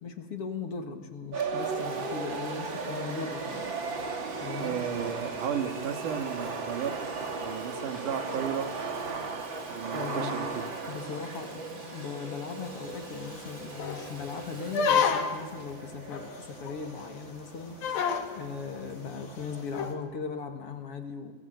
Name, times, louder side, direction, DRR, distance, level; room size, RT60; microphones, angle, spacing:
voice 1, 0.0-3.7 4.4-4.8 9.9-10.6 10.9-17.8 18.3-21.3, left 5 dB, 50° left, 5 dB, 2.3 m, -38 dB
sound 1, 1.3-19.6, right 4 dB, 40° right, 2.4 m, -37 dB
Domestic sounds home sounds, 1.4-16.9, right 1 dB, 20° right, 3.7 m, -46 dB
voice 2, 4.6-6.9 7.4-8.7 9.7-10.7, right 8 dB, 65° right, 6 dB, 3.1 m, -34 dB
sound 2, 12.7-12.8 13.2-13.3 13.8-14.1 14.7-15.5 16.1-16.2 16.7-16.8 17.0-17.1 17.8-18.3 19.7-19.9, left 6 dB, 75° left, 3.8 m, -27 dB
29.0 x 22.0 x 8.0 m, 1.3 s
omnidirectional pair, 4.2 m